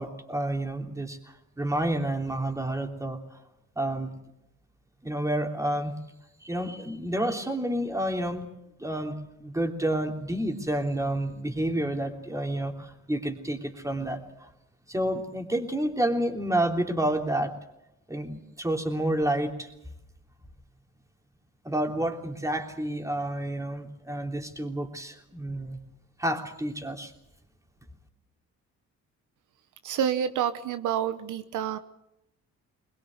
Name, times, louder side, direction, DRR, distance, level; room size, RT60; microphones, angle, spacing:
voice 1, 0.0-3.2 3.7-4.1 5.0-5.9 6.4-8.5 8.8-14.5 14.9-17.5 18.1-19.7 21.6-25.8 26.2-27.1, right 1 dB, 10° right, 3 dB, 3.3 m, -29 dB
voice 2, 29.8-31.8, right 9 dB, 80° right, 11 dB, 1.1 m, -28 dB
22.5 x 20.5 x 7.9 m, 0.86 s
cardioid pair, 90°, 30 cm